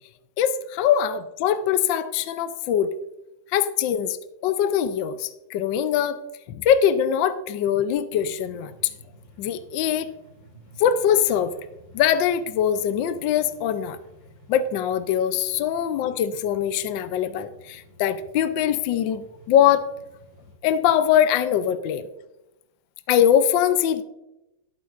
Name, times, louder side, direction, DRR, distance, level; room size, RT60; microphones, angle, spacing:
voice 1, 0.4-2.9 3.5-4.2 4.4-6.2 6.5-8.9 9.4-10.1 10.8-11.5 11.9-14.0 14.5-19.8 20.6-22.1 23.1-24.0, left 9 dB, 70° left, 11 dB, 1.2 m, -22 dB
sound 1, 8.1-20.5, equal, 55° left, 5.0 m, -52 dB
13.5 x 11.5 x 2.5 m, 0.93 s
omnidirectional pair, 2.3 m